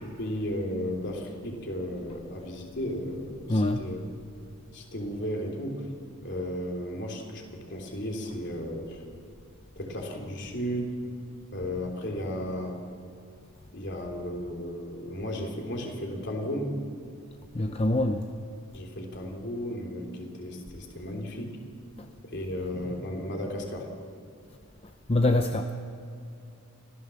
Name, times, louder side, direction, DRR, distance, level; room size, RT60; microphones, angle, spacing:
voice 1, 0.0-4.0 4.7-5.9 6.2-9.0 9.8-11.0 11.5-12.8 13.7-16.9 18.7-21.6 22.2-23.9, equal, 50° left, 1 dB, 3.4 m, -34 dB
voice 2, 3.5-3.8 17.5-18.3 25.1-25.7, left 2 dB, 25° left, 6 dB, 0.7 m, -24 dB
25.5 x 16.0 x 7.2 m, 2.5 s
head